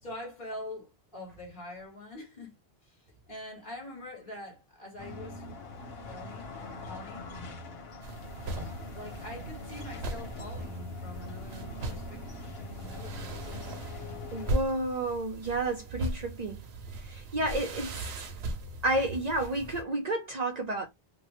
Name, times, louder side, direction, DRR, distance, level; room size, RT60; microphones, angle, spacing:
voice 1, 0.0-5.4 6.0-7.3 8.9-12.5 12.8-13.7 17.5-17.7, left 1 dB, 55° left, 1.6 m, -45 dB
sound 1, 5.0-14.6, left 2 dB, 75° left, 1.0 m, -42 dB
sound 2, 8.0-19.8, right 2 dB, 85° right, 0.9 m, -39 dB
voice 2, 14.3-16.6 17.0-17.9 18.8-20.9, right 2 dB, 50° right, 0.6 m, -31 dB
2.8 x 2.2 x 3.0 m
omnidirectional pair, 1.0 m